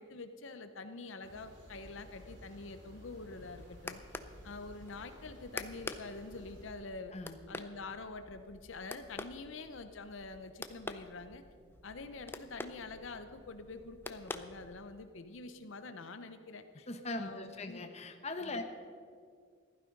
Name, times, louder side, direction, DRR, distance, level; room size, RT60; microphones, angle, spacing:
voice 1, 0.0-4.0 4.4-7.1 7.5-11.4 11.8-16.9 17.1-17.8 18.5-18.6, left 3 dB, 75° left, 9 dB, 0.7 m, -46 dB
sound 1, 1.2-6.6, equal, 60° right, 3.2 m, -55 dB
sound 2, 3.2-15.1, left 2 dB, 10° left, 0.4 m, -48 dB
voice 2, 16.9-18.6, left 2 dB, 35° left, 6 dB, 0.9 m, -40 dB
15.0 x 12.0 x 5.3 m, 2.1 s
head